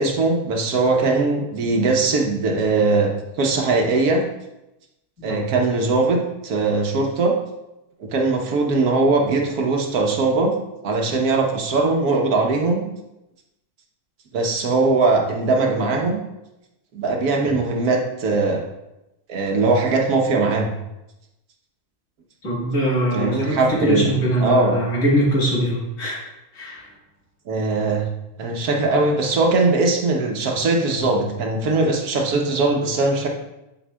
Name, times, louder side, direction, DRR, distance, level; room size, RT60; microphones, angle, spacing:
voice 1, 0.0-4.3 5.2-7.3 8.0-10.5 10.8-12.9 14.3-16.2 16.9-18.6 19.3-20.7 23.1-24.1 24.4-24.8 27.5-28.1 28.4-33.3, right 3 dB, 75° right, 2 dB, 1.4 m, -20 dB
voice 2, 5.2-5.5 17.4-17.5 22.4-26.2 26.5-26.9, equal, 55° left, -5 dB, 2.1 m, -22 dB
10.0 x 4.4 x 2.2 m, 0.93 s
omnidirectional pair, 1.6 m